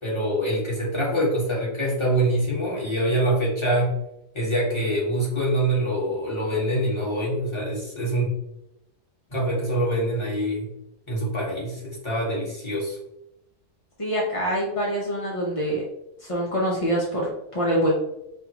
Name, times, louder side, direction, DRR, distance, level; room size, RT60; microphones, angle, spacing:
voice 1, 0.0-4.0 4.3-8.3 9.3-10.7 11.1-13.0, right 1 dB, 20° left, -5 dB, 1.4 m, -25 dB
voice 2, 14.0-15.8 16.2-17.9, equal, 40° left, -3 dB, 0.4 m, -25 dB
5.3 x 2.4 x 2.9 m, 0.83 s
omnidirectional pair, 1.7 m